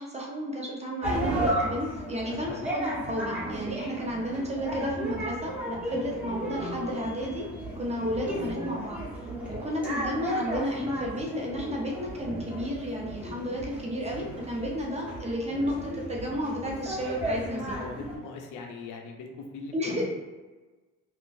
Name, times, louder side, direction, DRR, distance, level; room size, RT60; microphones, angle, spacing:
voice 1, 0.0-7.5 7.7-9.1 9.5-17.8 19.7-20.0, equal, 20° right, -2 dB, 0.8 m, -32 dB
sound 1, 1.0-18.2, equal, 5° right, 1.2 m, -34 dB
voice 2, 2.3-2.6 3.9-4.0 9.4-9.6 17.4-19.8, left 4 dB, 85° left, 2 dB, 0.6 m, -42 dB
3.8 x 2.4 x 2.5 m, 1.2 s
cardioid pair, 90°, 30 cm